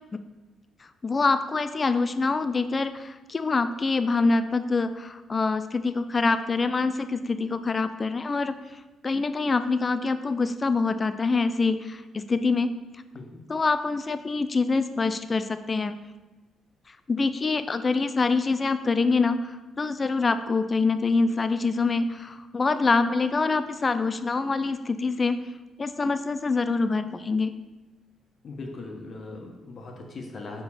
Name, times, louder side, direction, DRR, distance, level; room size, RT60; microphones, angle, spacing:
voice 1, 1.0-8.5 9.0-12.7 13.5-16.0 17.1-19.5 19.8-25.4 25.8-27.5, left 4 dB, 30° left, 10 dB, 0.3 m, -25 dB
voice 2, 28.4-30.6, left 3 dB, 50° left, 1 dB, 1.1 m, -39 dB
4.8 x 3.7 x 5.6 m, 1.2 s
cardioid pair, 90°, 0 cm